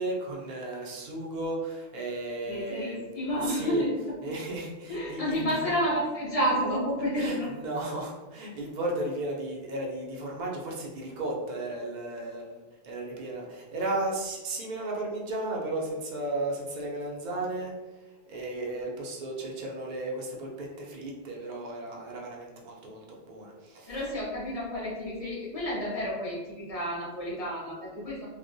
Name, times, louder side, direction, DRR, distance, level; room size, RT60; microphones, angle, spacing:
voice 1, 0.0-3.2 3.4-3.9 4.2-5.4 7.1-17.7 18.3-24.0, right 2 dB, 55° right, -2 dB, 0.6 m, -34 dB
voice 2, 2.5-4.3 4.9-7.5 23.9-28.3, equal, 40° left, -6 dB, 0.6 m, -30 dB
2.3 x 2.1 x 2.5 m, 1.2 s
omnidirectional pair, 1.1 m